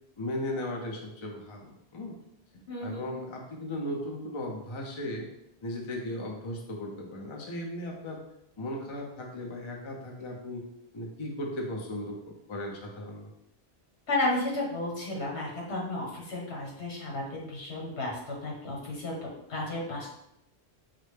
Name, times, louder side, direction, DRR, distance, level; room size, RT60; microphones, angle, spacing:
voice 1, 0.2-2.1 2.8-5.3 5.6-8.2 8.6-10.6 10.9-13.3, left 1 dB, 35° left, 0 dB, 0.6 m, -36 dB
voice 2, 2.7-3.0 14.1-19.1 19.5-20.1, left 2 dB, 75° left, -3 dB, 1.4 m, -33 dB
5.7 x 2.1 x 3.3 m, 0.80 s
omnidirectional pair, 1.1 m